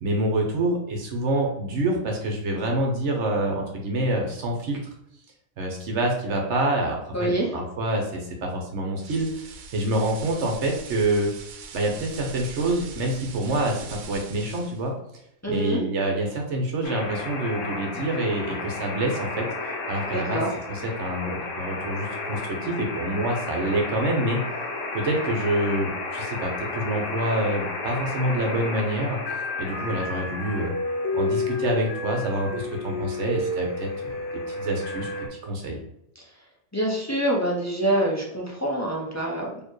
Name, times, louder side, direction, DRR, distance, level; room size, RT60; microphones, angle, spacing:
voice 1, 0.0-4.8 5.6-11.3 11.7-14.9 15.5-20.4 20.7-24.4 24.9-29.2 29.6-30.7 31.1-34.2 34.6-35.1 35.4-35.8, right 1 dB, 60° right, 1 dB, 1.0 m, -27 dB
voice 2, 7.1-7.6 15.4-15.9 20.1-20.5 36.7-39.6, right 1 dB, 25° left, -3 dB, 0.3 m, -25 dB
sound 1, 9.0-14.9, right 4 dB, 80° right, 1.1 m, -42 dB
sound 2, 16.8-35.3, left 2 dB, 65° left, 1.1 m, -32 dB
4.4 x 2.9 x 3.1 m, 0.77 s
omnidirectional pair, 1.5 m